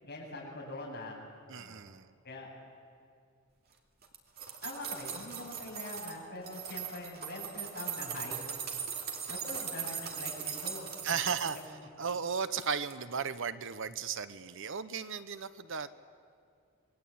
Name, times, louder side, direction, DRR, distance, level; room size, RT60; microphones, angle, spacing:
voice 1, 0.0-1.2 1.5-1.8 2.2-2.5 4.6-8.4 9.3-10.9 11.5-11.6, left 2 dB, 50° left, -3 dB, 8.0 m, -43 dB
voice 2, 1.5-2.1 11.0-11.6 12.0-15.9, right 6 dB, 65° right, 13 dB, 0.9 m, -35 dB
sound 1, 4.0-6.2 6.5-11.7 12.1-12.6 12.9-13.0, right 7 dB, 45° right, 2.7 m, -39 dB
27.5 x 21.5 x 8.7 m, 2.2 s
head